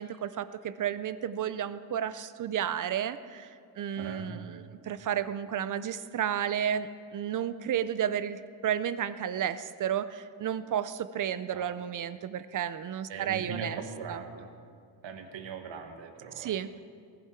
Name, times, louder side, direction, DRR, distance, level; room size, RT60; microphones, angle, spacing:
voice 1, 0.0-13.8 14.1-14.2 16.4-16.8, right 9 dB, 45° right, 14 dB, 0.4 m, -32 dB
voice 2, 4.0-4.3 11.5-11.8 13.1-14.5 15.0-16.5, right 5 dB, 75° right, 5 dB, 1.5 m, -40 dB
19.0 x 11.0 x 4.5 m, 2.3 s
wide cardioid pair, 175°, 45 cm